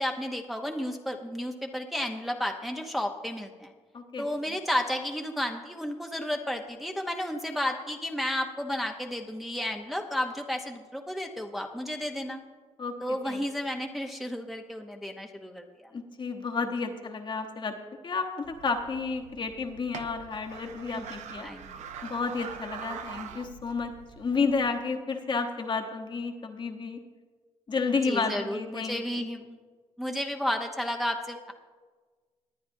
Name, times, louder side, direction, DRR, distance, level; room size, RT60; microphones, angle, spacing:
voice 1, 0.0-3.7 4.2-12.4 13.0-15.9 21.0-21.1 21.4-21.9 28.0-29.6 30.0-31.5, left 1 dB, ahead, 2 dB, 0.8 m, -32 dB
voice 2, 3.9-4.3 12.8-13.0 13.2-13.4 15.9-17.7 18.0-21.5 22.0-27.0 27.7-29.0, left 4 dB, 40° left, 4 dB, 1.1 m, -31 dB
sound 1, 18.4-24.7, right 7 dB, 85° right, 0.6 m, -44 dB
20.0 x 9.3 x 2.7 m, 1.4 s
cardioid pair, 90°, 12 cm